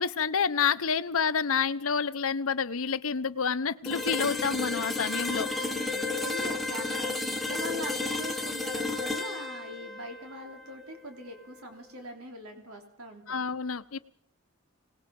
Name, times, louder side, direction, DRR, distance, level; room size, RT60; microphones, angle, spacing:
voice 1, 0.0-5.5 13.3-14.0, left 6 dB, 65° left, 13 dB, 0.8 m, -28 dB
sound 1, 3.9-11.7, left 3 dB, ahead, 1.2 m, -33 dB
voice 2, 5.6-13.2, right 1 dB, 75° right, 4 dB, 3.3 m, -42 dB
25.5 x 19.0 x 5.3 m, 0.72 s
head